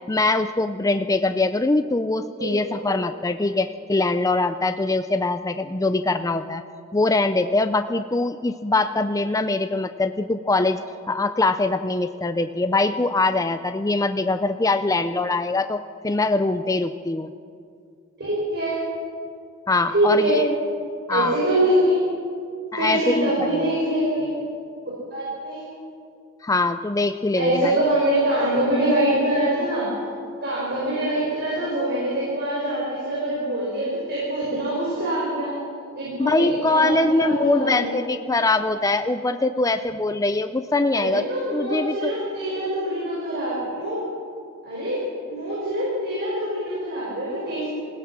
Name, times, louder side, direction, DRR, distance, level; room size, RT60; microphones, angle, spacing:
voice 1, 0.1-6.6 6.9-10.8 11.1-17.3 19.7-20.5 21.1-21.4 22.7-23.6 26.4-27.8 36.2-41.2 41.5-42.1, left 2 dB, 15° left, 9 dB, 0.5 m, -22 dB
voice 2, 2.4-2.8 18.2-18.8 19.9-20.4 21.1-22.0 22.8-24.3 25.1-25.6 27.3-29.9 30.4-35.5 36.0-37.9 40.9-44.0 44.6-45.0 45.2-47.7, right 1 dB, 50° right, -6 dB, 6.2 m, -24 dB
27.0 x 16.5 x 6.1 m, 2.4 s
head